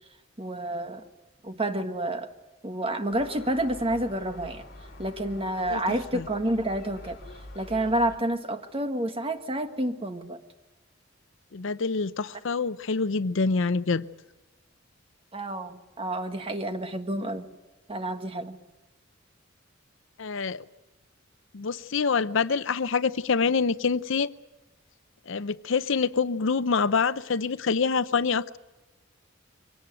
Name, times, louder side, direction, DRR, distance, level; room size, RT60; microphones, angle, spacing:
voice 1, 0.4-1.0 1.4-2.3 2.6-4.6 5.0-7.2 7.5-10.4 15.3-17.5 17.9-18.6, right 1 dB, 30° right, 7 dB, 1.6 m, -29 dB
Gull seagull, 3.1-8.2, left 1 dB, 50° left, 5.0 m, -46 dB
voice 2, 11.5-14.1 20.2-20.6 21.5-24.3 25.3-28.6, left 5 dB, 70° left, 15 dB, 0.7 m, -26 dB
23.5 x 18.0 x 9.2 m, 1.1 s
head